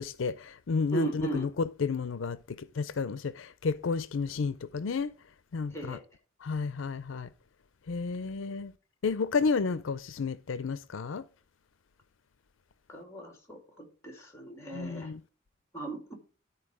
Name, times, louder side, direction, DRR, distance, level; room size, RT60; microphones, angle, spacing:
voice 1, 0.0-1.5 1.8-5.1 5.5-6.0 6.4-7.3 7.9-8.7 9.0-11.2 14.7-15.2, left 4 dB, 75° left, 0.5 m, -31 dB
voice 2, 0.9-1.5 5.7-6.0 12.9-15.1 15.7-16.1, right 3 dB, 15° left, 2.7 m, -37 dB
12.5 x 4.4 x 4.9 m
head